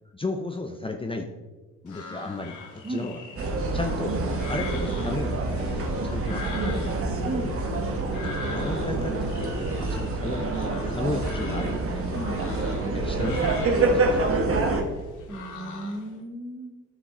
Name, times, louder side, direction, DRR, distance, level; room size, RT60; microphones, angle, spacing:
voice 1, 0.1-1.3 1.8-3.2 3.7-4.2 4.5-5.5 5.7-7.1 8.2-10.5 10.9-12.1 12.9-14.7, left 3 dB, 20° left, 4 dB, 0.7 m, -34 dB
sound 1, 1.9-16.2, left 4 dB, 80° left, 1.5 m, -42 dB
sound 2, 3.4-14.8, right 3 dB, 45° right, 1.5 m, -27 dB
voice 2, 7.2-7.5 12.1-12.5 15.3-16.8, right 1 dB, 20° right, 5 dB, 1.2 m, -35 dB
10.5 x 6.5 x 3.8 m, 1.3 s
cardioid pair, 90°, 30 cm